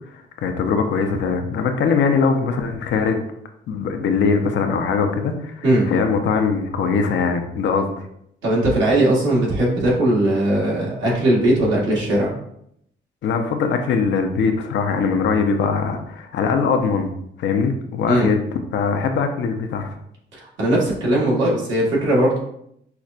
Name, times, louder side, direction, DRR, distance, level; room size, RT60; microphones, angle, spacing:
voice 1, 0.4-3.2 3.7-8.1 13.2-17.1 17.4-18.4 18.7-19.9, left 5 dB, 65° left, 5 dB, 0.6 m, -21 dB
voice 2, 8.4-12.4 18.1-18.3 20.3-22.4, right 1 dB, 75° right, -4 dB, 1.4 m, -19 dB
5.7 x 2.1 x 2.4 m, 0.73 s
cardioid pair, 90°, 20 cm